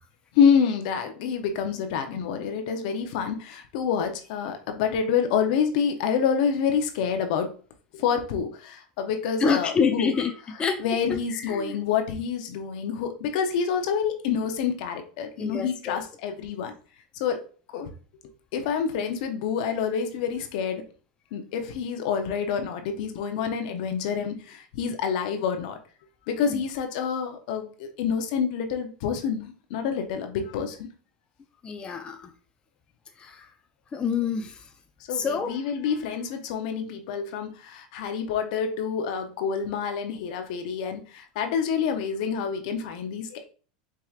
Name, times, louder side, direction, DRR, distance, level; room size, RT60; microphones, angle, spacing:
voice 1, 0.3-7.5 7.9-10.1 10.8-16.7 17.2-17.4 17.7-17.9 18.5-20.8 21.3-25.8 26.3-30.9 35.1-43.5, left 7 dB, 65° left, 6 dB, 0.7 m, -27 dB
voice 2, 9.4-10.3 10.6-10.8 11.5-11.8 15.4-16.0 31.6-32.3 33.2-33.5 33.9-34.6 35.1-35.5, left 5 dB, 20° left, 5 dB, 0.4 m, -27 dB
4.7 x 2.8 x 2.4 m, 0.39 s
hypercardioid pair, 110°, 4 cm